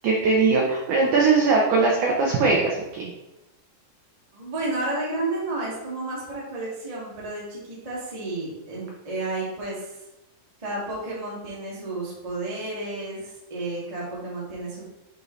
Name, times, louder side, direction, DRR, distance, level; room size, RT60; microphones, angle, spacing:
voice 1, 0.0-3.1, right 4 dB, 85° right, -2 dB, 1.7 m, -20 dB
voice 2, 4.3-10.0 10.6-14.9, right 2 dB, 30° right, -6 dB, 0.6 m, -31 dB
8.3 x 4.0 x 3.2 m, 0.93 s
omnidirectional pair, 4.7 m